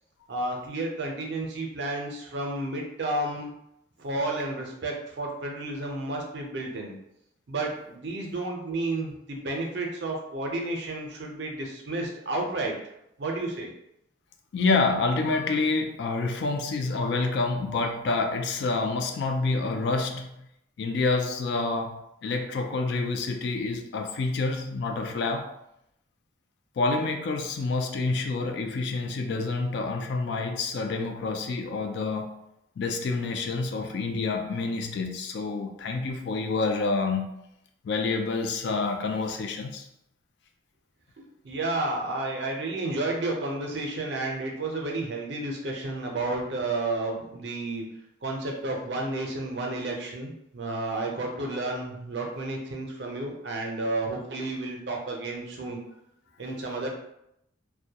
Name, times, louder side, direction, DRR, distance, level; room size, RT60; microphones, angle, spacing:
voice 1, 0.3-3.5 4.0-6.9 7.5-12.7 13.2-13.7 41.2-47.8 48.2-55.8 56.4-56.9, right 2 dB, 60° right, 0 dB, 0.5 m, -31 dB
voice 2, 14.5-20.3 20.8-25.5 26.8-32.4 32.8-37.3 37.8-39.8, left 3 dB, 60° left, 4 dB, 0.3 m, -28 dB
2.2 x 2.1 x 2.7 m, 0.80 s
head